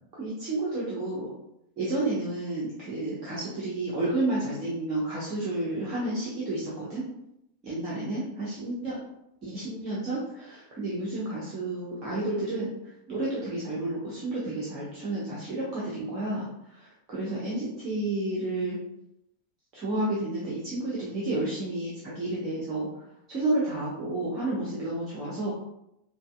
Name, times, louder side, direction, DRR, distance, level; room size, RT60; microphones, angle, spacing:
voice 1, 0.2-1.3 1.8-7.1 7.6-9.0 9.4-18.8 19.7-25.5, right 2 dB, 35° right, -6 dB, 1.0 m, -31 dB
5.4 x 2.4 x 2.3 m, 0.82 s
figure-of-eight pair, 90°, 0 cm